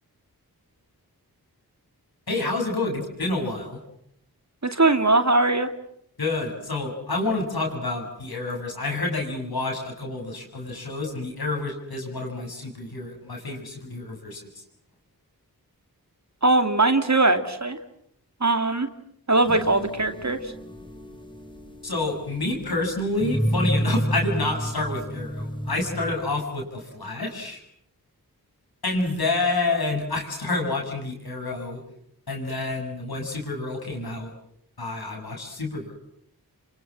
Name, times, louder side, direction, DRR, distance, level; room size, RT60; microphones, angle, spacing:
voice 1, 2.3-3.8 6.2-14.6 21.8-27.6 28.8-31.8 32.3-34.3 34.8-35.9, left 2 dB, 75° left, 1 dB, 7.5 m, -28 dB
voice 2, 4.6-5.7 16.4-17.8 18.4-18.9 19.3-20.4, right 2 dB, 45° right, 8 dB, 2.8 m, -20 dB
sound 1, 19.5-26.4, equal, 10° left, 4.0 m, -30 dB
28.5 x 25.5 x 7.6 m, 0.70 s
cardioid pair, 40°, 38 cm